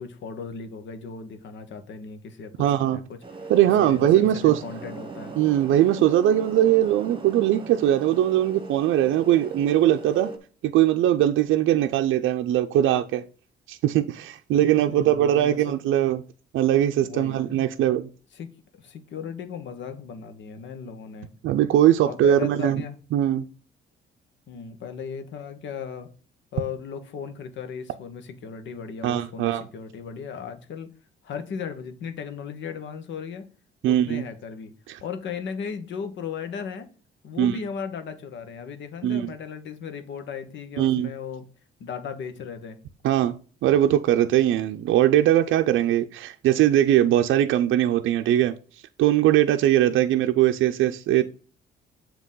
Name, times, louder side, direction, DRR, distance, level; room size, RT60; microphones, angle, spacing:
voice 1, 0.0-3.2 3.8-5.3 14.8-15.7 17.0-17.6 18.3-18.5 18.8-21.3 22.0-23.0 24.5-26.1 26.5-30.9 31.2-33.5 33.8-34.7 35.0-36.9 37.2-41.5 41.8-42.8, left 6 dB, 70° left, 1.1 m, -36 dB
voice 2, 2.6-3.0 3.5-4.6 5.4-10.3 10.6-13.2 13.7-16.2 16.5-18.1 21.4-22.8 23.1-23.5 29.0-29.6 33.8-34.2 34.9-35.0 37.4-37.6 39.0-39.3 40.8-41.1 43.0-43.3 43.6-48.5 49.0-51.2, right 12 dB, 80° right, 0.5 m, -20 dB
sound 1, 3.2-10.4, right 3 dB, 25° right, 1.2 m, -39 dB
7.5 x 2.9 x 5.4 m
cardioid pair, 90°, 20 cm